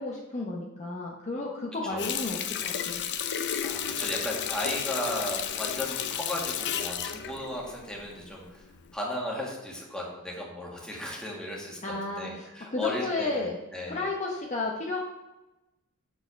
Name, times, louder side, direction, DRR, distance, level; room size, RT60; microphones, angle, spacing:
voice 1, 0.0-3.0 11.8-13.5 13.9-15.0, left 2 dB, 35° left, -2 dB, 0.9 m, -33 dB
Water tap faucet, 2.0-8.4 8.8-8.9, left 9 dB, 55° left, 0.5 m, -32 dB
voice 2, 3.3-14.1, left 1 dB, 5° left, -4 dB, 1.7 m, -35 dB
6.5 x 4.9 x 5.1 m, 1.0 s
head